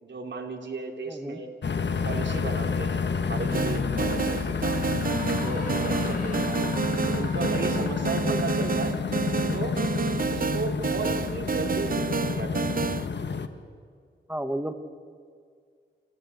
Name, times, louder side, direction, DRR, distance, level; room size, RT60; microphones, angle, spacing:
voice 1, 0.0-1.5 2.0-6.6 7.1-8.9 9.5-9.8 10.3-12.7, right 3 dB, 65° right, 3 dB, 3.0 m, -35 dB
voice 2, 1.1-1.4 8.3-8.4 14.3-14.7, right 1 dB, 10° right, 9 dB, 1.4 m, -32 dB
sound 1, 1.6-13.5, left 5 dB, 60° left, 1.3 m, -29 dB
sound 2, 3.5-13.1, right 6 dB, 45° right, 0.8 m, -29 dB
sound 3, 4.9-8.3, left 1 dB, 40° left, 7.3 m, -41 dB
27.5 x 16.0 x 8.2 m, 2.1 s
wide cardioid pair, 85°, 20 cm